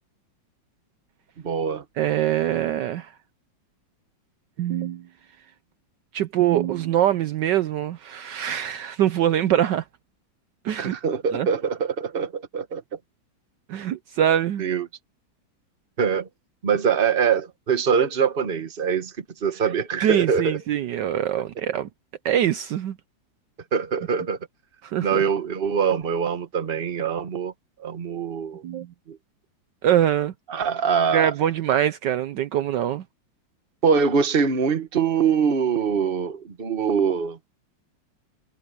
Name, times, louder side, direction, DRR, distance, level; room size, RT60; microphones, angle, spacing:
voice 1, 1.4-1.8 10.8-12.8 14.6-14.9 16.0-16.3 16.6-20.6 23.7-24.4 25.0-27.5 27.8-28.6 29.1-29.2 30.5-31.3 33.8-37.4, right 6 dB, 30° right, 1.3 m, -23 dB
voice 2, 2.0-3.1 4.6-5.0 6.1-9.8 10.6-11.0 11.3-11.5 13.7-14.6 20.0-21.9 22.2-23.0 24.8-25.2 28.6-28.9 29.8-30.3 31.1-33.0, right 11 dB, 70° right, 1.3 m, -23 dB
omnidirectional pair, 2.1 m